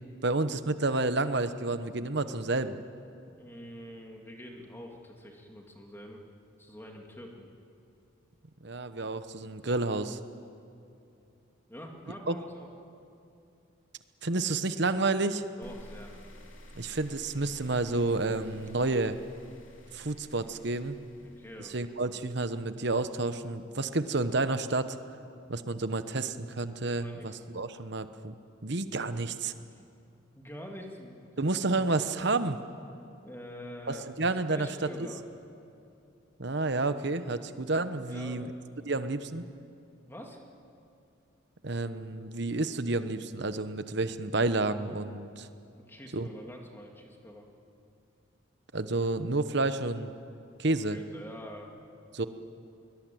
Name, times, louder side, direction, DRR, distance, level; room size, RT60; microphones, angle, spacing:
voice 1, 0.2-2.8 8.6-10.2 12.3-12.4 14.2-15.5 16.7-19.1 19.9-21.0 21.7-25.0 25.5-28.3 28.6-29.5 31.4-32.6 33.9-34.7 35.0-35.1 36.4-38.5 38.8-39.5 41.6-45.5 46.1-46.3 48.7-50.1 50.6-51.0 52.1-52.3, right 2 dB, 55° right, 11 dB, 1.0 m, -30 dB
voice 2, 3.2-6.2 6.6-7.5 11.7-12.7 15.6-16.1 18.7-19.0 21.2-21.9 27.0-27.4 29.7-29.8 30.3-31.5 33.0-34.2 34.5-35.2 38.1-38.4 40.0-40.4 45.6-47.5 50.6-51.7, equal, 10° left, 1 dB, 2.5 m, -46 dB
sound 1, 15.6-22.7, equal, 75° left, 3.2 m, -52 dB
22.0 x 20.5 x 9.3 m, 2.7 s
head